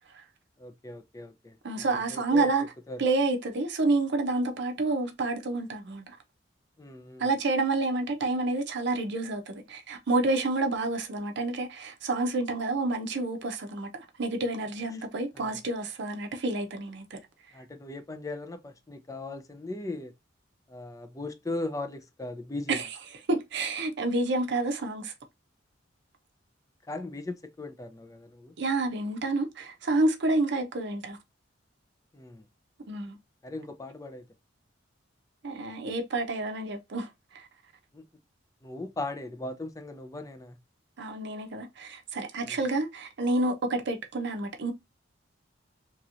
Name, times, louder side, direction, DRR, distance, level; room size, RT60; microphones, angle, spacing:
voice 1, 0.6-2.5 2.9-3.0 6.8-7.3 15.4-15.6 17.5-20.1 20.7-22.8 26.9-28.5 32.1-32.4 33.4-34.2 37.9-38.0 38.6-40.6 42.4-42.6, left 2 dB, 15° left, 0.4 m, -38 dB
voice 2, 1.6-2.7 3.0-6.2 7.2-17.2 22.7-22.9 23.3-25.1 28.6-31.2 32.9-33.2 35.4-37.1 37.3-37.5 41.0-44.7, right 2 dB, 65° right, 0.6 m, -29 dB
3.0 x 2.9 x 2.4 m
head